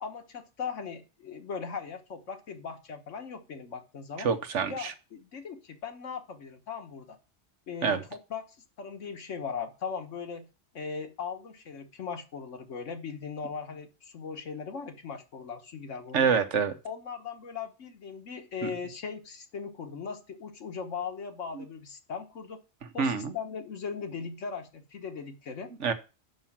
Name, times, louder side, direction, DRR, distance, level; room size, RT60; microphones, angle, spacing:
voice 1, 0.0-4.3 4.7-7.2 7.7-8.5 8.8-10.5 10.7-16.3 16.9-22.6 22.9-25.7, left 6 dB, 75° left, 6 dB, 1.6 m, -39 dB
voice 2, 4.2-4.9 7.8-8.0 16.1-16.7 18.6-18.7 21.5-21.6 23.0-23.3 25.8-25.9, right 6 dB, 70° right, 9 dB, 1.3 m, -26 dB
6.3 x 5.8 x 7.2 m, 0.31 s
omnidirectional pair, 1.3 m